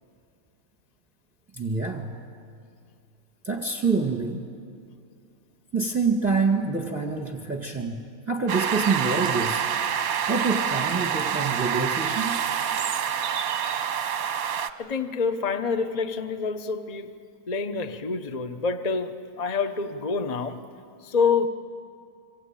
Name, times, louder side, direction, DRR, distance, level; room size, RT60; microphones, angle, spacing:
voice 1, 1.5-2.1 3.4-4.4 5.7-9.6 10.3-12.4, right 4 dB, 5° right, 1.4 m, -26 dB
sound 1, 8.5-14.7, right 8 dB, 55° right, 1.1 m, -27 dB
voice 2, 14.8-17.2 17.5-20.6 21.0-21.5, left 5 dB, 55° left, 0.4 m, -27 dB
26.5 x 25.0 x 8.9 m
omnidirectional pair, 2.3 m